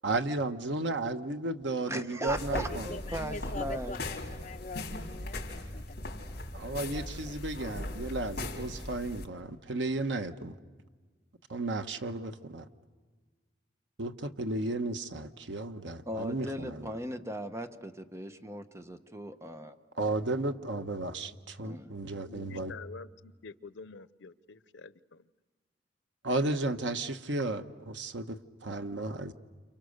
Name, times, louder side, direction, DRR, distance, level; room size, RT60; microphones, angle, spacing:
voice 1, 0.0-2.9 6.5-10.5 11.5-12.6 14.0-16.8 19.9-22.7 26.2-29.3, right 2 dB, 80° right, 1.2 m, -34 dB
voice 2, 1.9-4.0 16.1-19.8 21.6-21.9, equal, 15° right, 1.2 m, -38 dB
sound 1, 2.3-9.2, left 1 dB, 60° left, 3.9 m, -39 dB
voice 3, 2.9-6.0 6.9-7.3, left 2 dB, 45° left, 1.2 m, -43 dB
voice 4, 22.2-25.3, left 4 dB, 85° left, 0.8 m, -48 dB
29.5 x 29.0 x 6.6 m
head